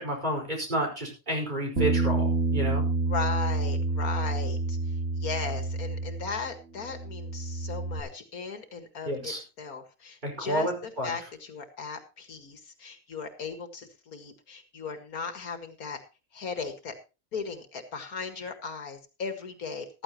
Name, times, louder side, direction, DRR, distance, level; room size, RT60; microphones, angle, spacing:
voice 1, 0.0-2.9 9.1-9.4 10.2-11.1, equal, 30° right, 1 dB, 5.3 m, -30 dB
Bass guitar, 1.8-6.5 6.8-8.0, right 3 dB, 65° right, 3.0 m, -28 dB
voice 2, 3.1-4.8 5.2-10.7 11.0-16.0 16.3-16.9 17.3-20.0, left 5 dB, 80° left, 7 dB, 2.3 m, -37 dB
14.5 x 14.0 x 3.0 m, 0.31 s
omnidirectional pair, 1.5 m